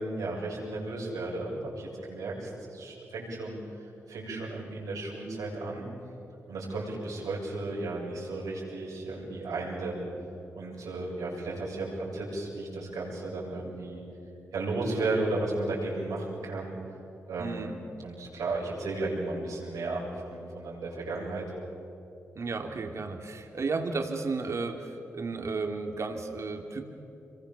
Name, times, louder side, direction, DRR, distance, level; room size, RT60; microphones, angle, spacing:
voice 1, 0.0-5.9 6.5-10.0 10.6-14.0 14.5-16.8 17.3-21.4, right 2 dB, 85° right, -4 dB, 7.5 m, -34 dB
voice 2, 17.4-17.7 22.4-26.8, right 4 dB, 55° right, 4 dB, 2.8 m, -33 dB
26.5 x 22.5 x 7.3 m, 2.8 s
cardioid pair, 50°, 6 cm